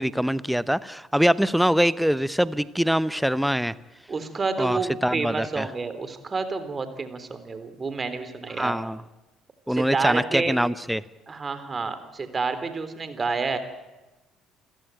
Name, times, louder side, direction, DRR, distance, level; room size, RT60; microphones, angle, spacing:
voice 1, 0.0-3.7 4.6-5.7 8.6-9.0 9.7-11.0, equal, ahead, 18 dB, 0.9 m, -23 dB
voice 2, 4.1-8.8 9.7-10.6 11.3-13.6, right 4 dB, 30° right, 11 dB, 3.6 m, -29 dB
29.0 x 16.5 x 9.2 m, 1.1 s
figure-of-eight pair, 50°, 0 cm